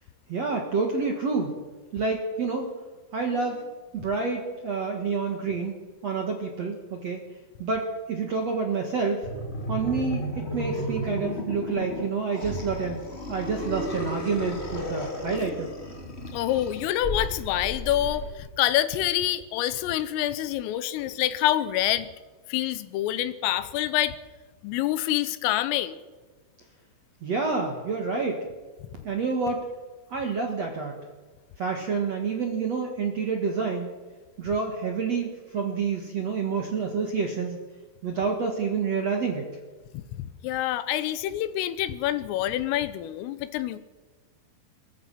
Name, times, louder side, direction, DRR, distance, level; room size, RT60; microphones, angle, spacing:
voice 1, 0.3-1.5 1.9-2.7 3.1-3.7 3.9-5.8 6.0-7.2 7.6-9.3 9.7-13.0 13.3-15.7 27.2-28.4 29.0-29.6 30.1-31.0 31.6-33.9 34.4-37.6 38.0-39.5, right 4 dB, 50° right, 2 dB, 2.0 m, -28 dB
sound 1, 9.2-18.3, left 1 dB, 55° left, 0.7 m, -34 dB
voice 2, 16.3-22.1 22.5-24.2 24.6-26.0 39.9-43.8, left 13 dB, 85° left, 14 dB, 3.5 m, -27 dB
22.5 x 21.0 x 5.8 m, 1.3 s
omnidirectional pair, 5.8 m